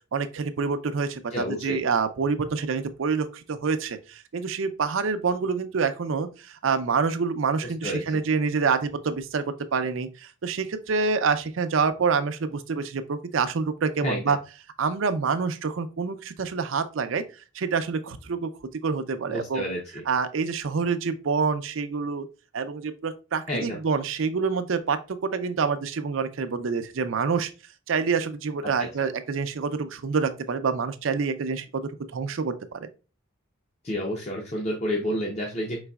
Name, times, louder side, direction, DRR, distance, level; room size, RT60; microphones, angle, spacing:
voice 1, 0.1-14.4 14.8-17.2 17.5-19.6 20.1-22.3 22.5-27.5 27.9-32.9, right 5 dB, 75° right, 0.5 m, -27 dB
voice 2, 1.3-1.8 7.8-8.2 14.0-14.3 19.3-20.0 23.5-23.8 33.8-35.8, equal, 35° left, 0.6 m, -30 dB
4.8 x 4.0 x 2.3 m
head